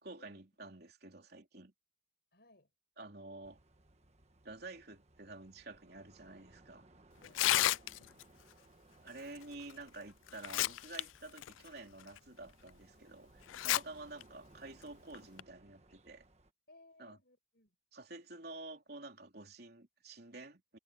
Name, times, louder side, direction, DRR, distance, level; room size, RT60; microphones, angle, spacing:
voice 1, 0.0-1.7 3.0-3.6 4.4-6.9 9.0-16.2 17.0-17.2 17.9-20.8, right 2 dB, 55° right, 3.5 m, -50 dB
voice 2, 2.3-2.7 7.2-8.0 13.9-14.0 16.7-17.7, left 2 dB, 60° left, 6.2 m, -63 dB
sound 1, 3.4-16.5, right 2 dB, 35° right, 1.4 m, -64 dB
Tearing, 7.2-8.2 9.7-9.8 10.3-11.0 11.4-11.5 12.2-12.3 13.5-13.8 14.2-14.3 15.1-15.4, left 14 dB, 85° left, 0.3 m, -31 dB
head